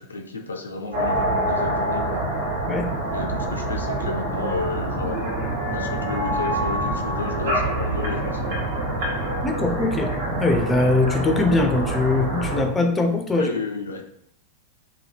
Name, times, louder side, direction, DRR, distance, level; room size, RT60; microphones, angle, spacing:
voice 1, 0.0-2.3 3.1-5.3 5.7-8.6 13.3-14.0, left 3 dB, 75° left, 3 dB, 0.4 m, -32 dB
sound 1, 0.9-12.7, right 1 dB, 50° right, 0.9 m, -26 dB
voice 2, 9.4-10.1 10.4-13.5, left 2 dB, 15° left, 3 dB, 0.4 m, -21 dB
2.7 x 2.2 x 3.2 m, 0.71 s
figure-of-eight pair, 90°, 0 cm